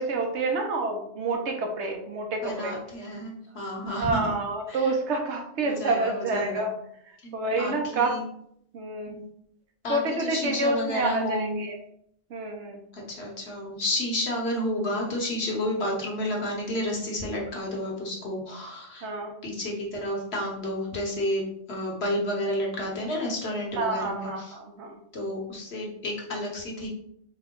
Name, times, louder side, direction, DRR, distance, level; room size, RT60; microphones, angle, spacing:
voice 1, 0.0-2.8 4.0-6.7 7.3-8.2 8.7-9.1 9.9-11.7 12.3-12.8 19.0-19.3 23.8-25.0, right 2 dB, 65° right, 2 dB, 1.0 m, -28 dB
voice 2, 2.4-4.4 4.7-4.9 5.6-6.7 7.2-8.2 9.1-9.2 9.8-11.6 12.9-19.1 19.4-24.6 25.1-26.9, left 1 dB, 55° left, -2 dB, 1.3 m, -31 dB
4.4 x 2.2 x 3.6 m, 0.70 s
omnidirectional pair, 1.3 m